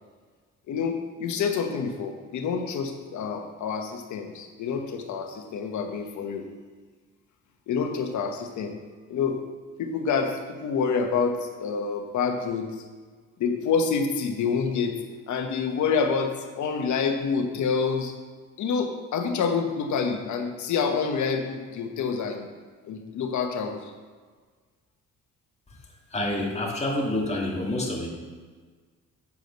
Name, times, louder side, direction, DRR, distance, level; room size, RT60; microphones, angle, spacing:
voice 1, 0.7-6.4 7.7-8.7 9.1-9.4 9.8-12.8 13.4-15.0 15.3-18.1 18.6-22.5 22.8-23.9, left 5 dB, 70° left, 4 dB, 1.2 m, -27 dB
voice 2, 26.1-28.1, left 1 dB, 20° left, -3 dB, 2.1 m, -27 dB
8.3 x 5.0 x 5.3 m, 1.5 s
cardioid pair, 90°, 30 cm